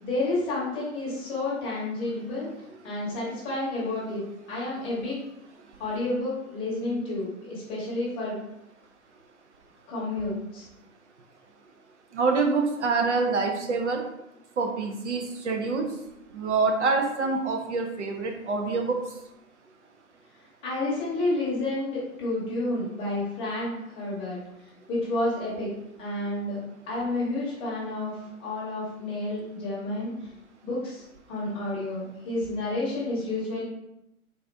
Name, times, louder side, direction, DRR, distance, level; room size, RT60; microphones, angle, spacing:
voice 1, 0.0-2.5 2.8-4.2 4.5-5.2 5.8-8.4 9.9-10.7 20.6-24.4 24.9-25.7 26.0-26.6 26.9-30.1 30.6-33.6, left 2 dB, 15° left, -7 dB, 0.9 m, -30 dB
voice 2, 12.1-14.1 14.6-15.9 16.3-19.1, right 4 dB, 55° right, 3 dB, 0.6 m, -26 dB
4.0 x 2.5 x 3.3 m, 0.86 s
hypercardioid pair, 140°, 43 cm